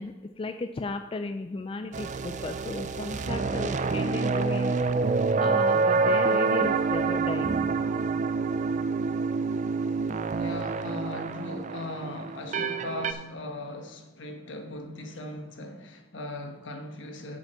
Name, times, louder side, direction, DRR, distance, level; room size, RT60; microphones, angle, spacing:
voice 1, 0.0-7.5, left 3 dB, 30° left, 0.3 m, -35 dB
sound 1, 1.9-13.1, right 4 dB, 40° right, 0.4 m, -27 dB
voice 2, 10.4-17.4, left 1 dB, 70° left, 1.3 m, -39 dB
8.6 x 5.1 x 6.8 m
head